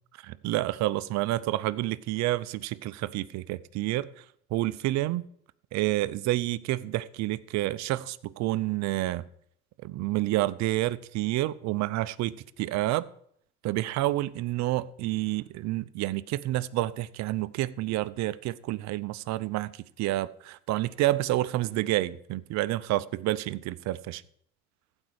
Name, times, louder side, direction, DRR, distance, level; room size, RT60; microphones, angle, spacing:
voice 1, 0.2-4.2 4.5-5.2 5.7-9.3 9.8-13.1 13.6-24.2, right 16 dB, 60° right, 0.6 m, -29 dB
15.0 x 5.3 x 6.4 m
supercardioid pair, 85°, 31 cm